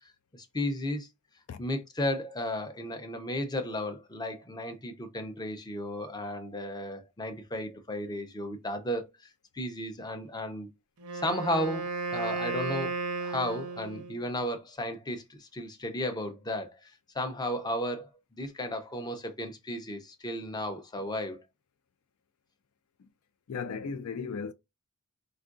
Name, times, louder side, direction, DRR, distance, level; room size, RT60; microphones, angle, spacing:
voice 1, 0.3-1.1 1.6-9.1 9.5-10.7 11.1-21.4, left 1 dB, 20° left, 0.6 m, -34 dB
Wind instrument woodwind instrument, 11.0-14.3, right 3 dB, 75° right, 0.6 m, -34 dB
voice 2, 23.5-24.5, left 5 dB, 65° left, 0.4 m, -35 dB
4.4 x 2.4 x 2.4 m
head